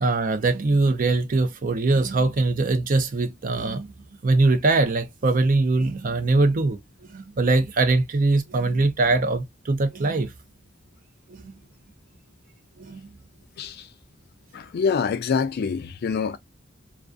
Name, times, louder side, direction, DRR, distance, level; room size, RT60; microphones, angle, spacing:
voice 1, 0.0-3.9 4.2-6.8 7.1-10.3 11.3-11.5 12.8-13.0, right 3 dB, 45° right, 0.5 m, -22 dB
voice 2, 14.5-16.4, left 5 dB, 55° left, 0.3 m, -25 dB
2.3 x 2.3 x 2.4 m
head